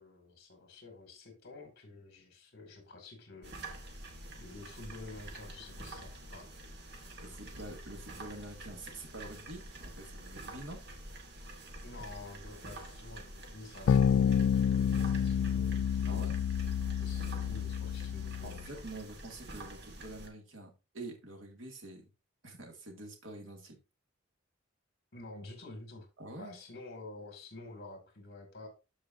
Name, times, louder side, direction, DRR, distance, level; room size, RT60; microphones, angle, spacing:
voice 1, 0.0-3.8 4.4-6.5 11.8-16.2 17.0-18.8 25.1-26.1 26.4-28.7, left 2 dB, 55° left, 4 dB, 2.3 m, -49 dB
sound 1, 3.4-20.3, right 1 dB, 60° right, 1.8 m, -47 dB
voice 2, 7.2-10.8 16.1-16.4 18.4-22.1 22.4-23.8 26.2-26.6, right 2 dB, 75° right, 2 dB, 2.3 m, -46 dB
sound 2, 13.9-18.6, left 8 dB, 85° left, 0.3 m, -29 dB
13.5 x 4.8 x 2.6 m, 0.28 s
head